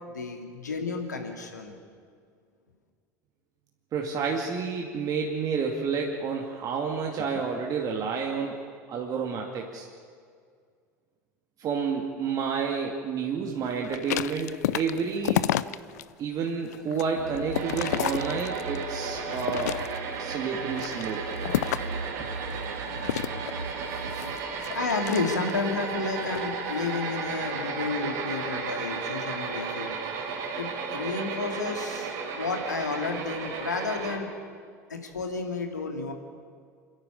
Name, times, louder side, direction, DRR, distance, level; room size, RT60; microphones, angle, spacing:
voice 1, 0.1-1.8 24.7-29.9 30.6-34.3 34.9-36.1, left 4 dB, 90° left, 4 dB, 2.4 m, -31 dB
voice 2, 3.9-9.9 11.6-15.5 16.2-19.8 20.2-21.3, right 5 dB, 40° right, 0 dB, 2.3 m, -30 dB
sound 1, 13.8-16.0 16.5-18.8 19.3-20.2 20.7-22.0 23.0-25.7 26.2-26.5, left 13 dB, 70° left, 0.6 m, -31 dB
sound 2, 17.2-24.3, right 4 dB, 85° right, 1.8 m, -38 dB
sound 3, 17.5-34.2, right 5 dB, 60° right, 4.2 m, -34 dB
28.5 x 11.0 x 8.9 m, 2.1 s
hypercardioid pair, 75°, 9 cm